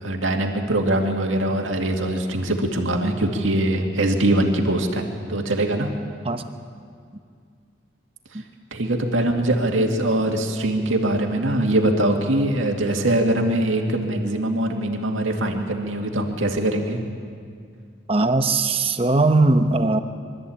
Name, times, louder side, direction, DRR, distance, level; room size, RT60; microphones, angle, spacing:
voice 1, 0.0-5.9 8.3-8.4 8.7-17.0, right 1 dB, 90° right, 2 dB, 2.2 m, -22 dB
voice 2, 18.1-20.0, right 2 dB, 30° right, 7 dB, 0.9 m, -19 dB
23.0 x 13.5 x 8.6 m, 2.2 s
head